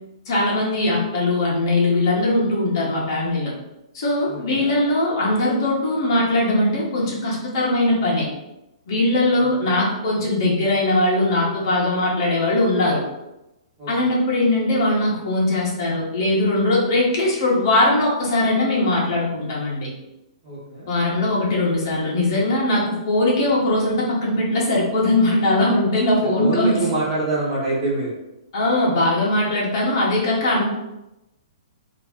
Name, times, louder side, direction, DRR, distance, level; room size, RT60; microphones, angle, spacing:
voice 1, 0.3-3.5 3.9-8.3 8.9-13.0 13.9-19.9 20.9-26.8 28.5-30.6, left 2 dB, 40° left, -4 dB, 1.0 m, -20 dB
voice 2, 4.3-4.7 9.6-9.8 13.8-13.9 20.4-20.9 26.4-28.1, right 2 dB, 10° right, -9 dB, 1.0 m, -25 dB
3.0 x 2.6 x 3.6 m, 0.93 s
hypercardioid pair, 175°, 3 cm